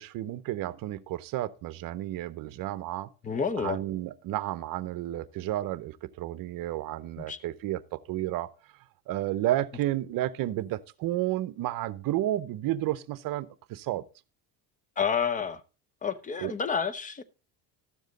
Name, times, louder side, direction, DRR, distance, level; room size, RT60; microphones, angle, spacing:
voice 1, 0.0-3.1 3.6-8.5 9.1-14.0 16.4-16.5, right 14 dB, 55° right, 0.8 m, -31 dB
voice 2, 3.2-3.8 7.2-7.4 15.0-15.6 16.0-17.2, left 6 dB, 20° left, 0.7 m, -29 dB
13.0 x 7.3 x 3.9 m
cardioid pair, 135°, 40 cm